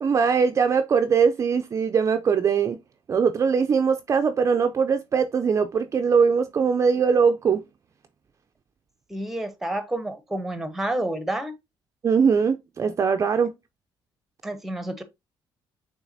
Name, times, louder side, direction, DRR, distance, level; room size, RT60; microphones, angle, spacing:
voice 1, 0.0-2.8 3.1-7.6 12.0-13.5, right 6 dB, 35° right, 0.4 m, -21 dB
voice 2, 9.1-11.5 14.4-15.0, right 1 dB, 5° right, 0.8 m, -29 dB
6.2 x 3.3 x 2.6 m
cardioid pair, 110°, 9 cm